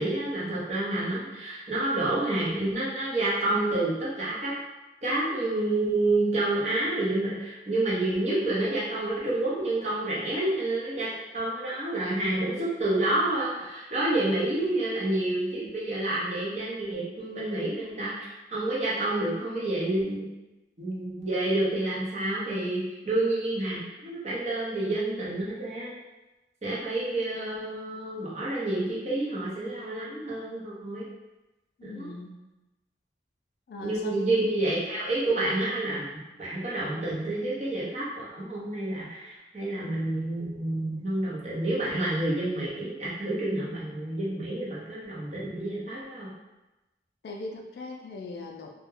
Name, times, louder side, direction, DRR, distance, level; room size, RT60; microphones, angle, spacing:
voice 1, 0.0-4.5 5.0-20.3 20.8-25.9 26.6-31.1 31.8-32.1 33.8-46.3, right 2 dB, 40° right, -6 dB, 0.7 m, -29 dB
voice 2, 31.8-32.4 33.7-34.5 47.2-48.7, left 2 dB, 65° left, 2 dB, 0.3 m, -39 dB
2.2 x 2.0 x 3.1 m, 1.0 s
head